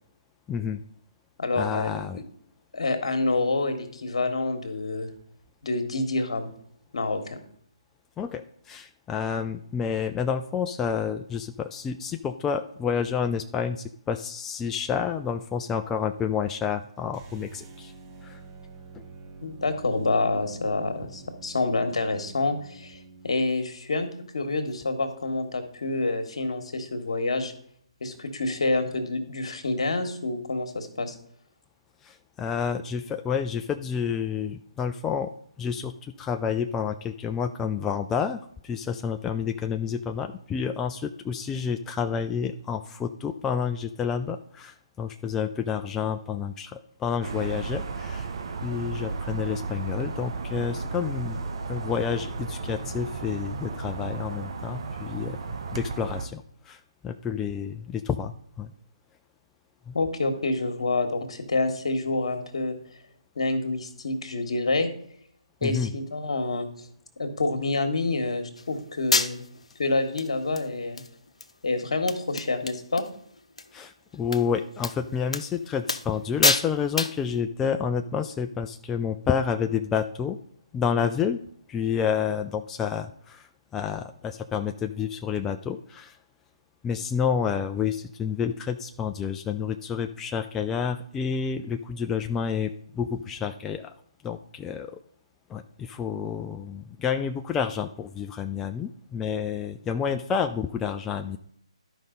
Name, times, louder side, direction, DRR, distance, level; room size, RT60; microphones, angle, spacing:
voice 1, 0.5-0.8 1.6-2.2 8.2-17.9 18.2-18.4 32.0-35.3 35.6-48.3 48.6-51.4 51.7-58.3 58.6-58.7 59.9-60.0 65.6-65.9 73.7-80.4 80.7-81.4 81.7-86.2 86.8-93.9 94.2-95.0 95.5-101.4, left 7 dB, 10° left, 6 dB, 0.3 m, -29 dB
voice 2, 1.4-2.0 2.7-5.1 5.6-6.5 6.9-7.4 19.4-24.1 24.3-27.5 28.0-31.1 59.9-62.8 63.4-64.9 65.6-66.7 67.2-69.4 69.8-71.0 71.6-73.1, left 2 dB, 65° left, 6 dB, 1.5 m, -27 dB
sound 1, 17.1-23.4, right 4 dB, 25° right, 1.1 m, -47 dB
sound 2, 47.2-56.3, right 4 dB, 50° right, 1.0 m, -34 dB
sound 3, 68.6-68.7 69.1-69.6 70.2-70.3 70.6-71.1 71.4-71.5 71.8-71.9 72.1-73.1 73.4-73.6 74.3-74.4 74.8-74.9 75.3-75.5 75.9-76.2 76.4-76.7 77.0-77.2, left 3 dB, 80° left, 0.7 m, -26 dB
12.0 x 5.2 x 3.9 m, 0.65 s
figure-of-eight pair, 145°, 3 cm